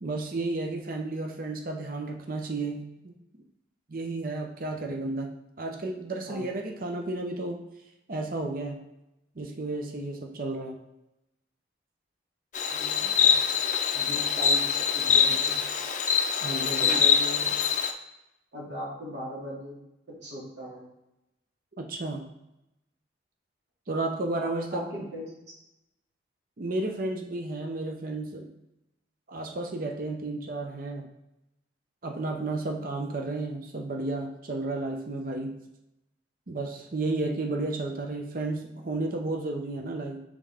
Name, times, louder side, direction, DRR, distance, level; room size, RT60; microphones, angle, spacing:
voice 1, 0.0-3.1 3.9-7.6 8.1-8.8 9.4-10.8 16.4-17.0 21.8-22.3 23.9-24.9 26.6-28.5 29.3-31.1 32.0-35.6 36.5-40.2, right 2 dB, 50° right, 2 dB, 0.6 m, -32 dB
Insect, 12.5-17.9, left 7 dB, 40° left, 0.5 m, -24 dB
voice 2, 12.7-13.3 13.9-15.6 16.6-17.5 18.5-19.8 20.1-20.8 24.4-25.2, equal, 70° right, -6 dB, 2.2 m, -38 dB
5.5 x 5.1 x 3.4 m, 0.89 s
head